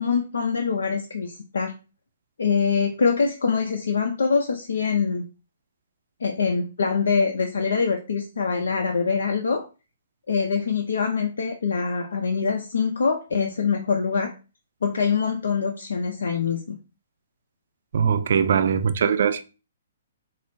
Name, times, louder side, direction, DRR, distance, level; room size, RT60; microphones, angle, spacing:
voice 1, 0.0-1.7 2.4-5.2 6.2-9.7 10.3-14.3 14.8-16.8, left 5 dB, 85° left, 0.6 m, -24 dB
voice 2, 17.9-19.4, right 7 dB, 65° right, 0.5 m, -21 dB
4.8 x 2.0 x 4.2 m
hypercardioid pair, 155°, 0 cm